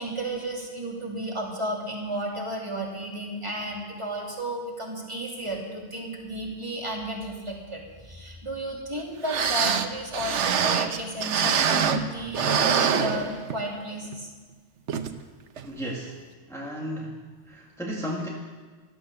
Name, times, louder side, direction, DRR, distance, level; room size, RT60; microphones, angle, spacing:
voice 1, 0.0-14.3, right 1 dB, 25° right, -2 dB, 2.9 m, -33 dB
sound 1, 9.0-9.1 9.3-12.1 12.3-13.7 14.1-14.2 14.9-15.1 15.6-15.7, right 7 dB, 75° right, 1.1 m, -25 dB
voice 2, 15.6-16.2 16.5-17.2 17.5-18.3, equal, ahead, -3 dB, 1.7 m, -34 dB
15.0 x 12.5 x 6.8 m, 1.4 s
omnidirectional pair, 1.2 m